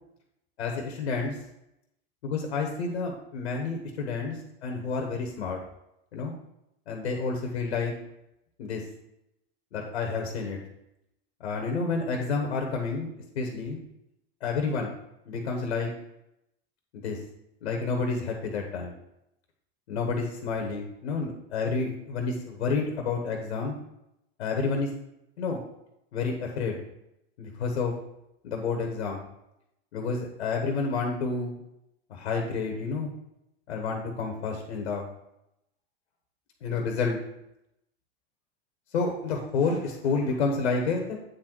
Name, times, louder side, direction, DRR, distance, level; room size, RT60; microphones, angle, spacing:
voice 1, 0.6-1.4 2.2-4.3 4.6-5.6 6.1-6.3 6.9-7.9 8.6-8.8 9.7-10.6 11.4-13.1 13.3-13.8 14.4-14.9 15.3-15.9 16.9-17.2 17.6-18.9 19.9-23.8 24.4-24.9 25.4-25.6 26.1-26.8 27.4-27.9 28.4-29.3 29.9-31.6 32.1-33.1 33.7-35.0 36.6-37.2 38.9-41.2, left 4 dB, 90° left, 2 dB, 1.2 m, -29 dB
8.5 x 4.0 x 4.5 m, 0.84 s
supercardioid pair, 120°, 32 cm